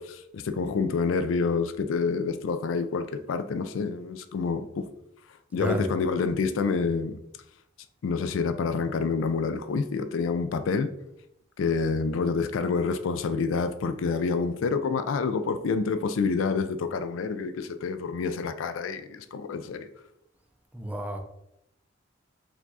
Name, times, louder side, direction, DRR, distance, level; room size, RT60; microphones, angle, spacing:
voice 1, 0.0-4.9 5.5-7.2 8.0-10.9 11.6-19.9, left 4 dB, 80° left, 0.4 m, -28 dB
voice 2, 5.6-5.9 20.7-21.2, right 1 dB, 5° right, 0.5 m, -31 dB
4.7 x 2.4 x 4.0 m
head